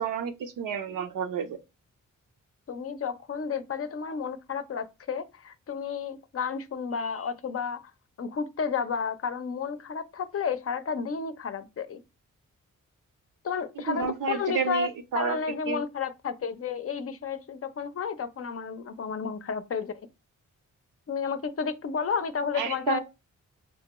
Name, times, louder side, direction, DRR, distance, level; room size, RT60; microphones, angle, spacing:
voice 1, 0.0-1.6 13.8-15.8 22.5-23.0, right 7 dB, 85° right, 0.6 m, -31 dB
voice 2, 2.7-7.9 8.2-12.0 13.4-14.9 15.1-20.0 21.1-23.0, left 6 dB, 45° left, 0.5 m, -32 dB
4.6 x 2.2 x 2.9 m
cardioid pair, 70°, 31 cm